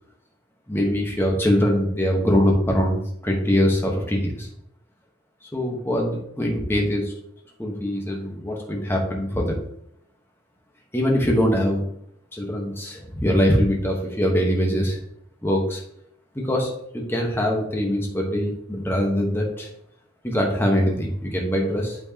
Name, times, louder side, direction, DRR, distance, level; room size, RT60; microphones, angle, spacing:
voice 1, 0.7-4.5 5.5-7.1 7.6-9.5 10.9-11.8 12.3-15.0 15.4-15.8 16.3-19.7 20.2-22.0, equal, 10° left, 0 dB, 1.1 m, -23 dB
8.7 x 4.5 x 2.9 m, 0.74 s
head